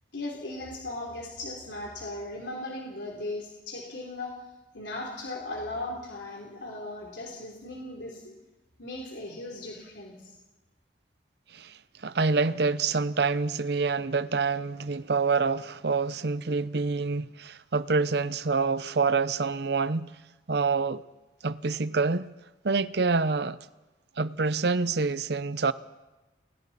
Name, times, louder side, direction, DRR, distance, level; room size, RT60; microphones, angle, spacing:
voice 1, 0.1-4.4 4.7-8.3 8.8-10.3, left 2 dB, 80° left, 3.5 m, -37 dB
voice 2, 11.5-20.1 20.5-21.0 21.4-22.3 22.6-23.6 24.2-25.7, right 4 dB, 60° right, 0.7 m, -27 dB
29.5 x 21.5 x 4.2 m
head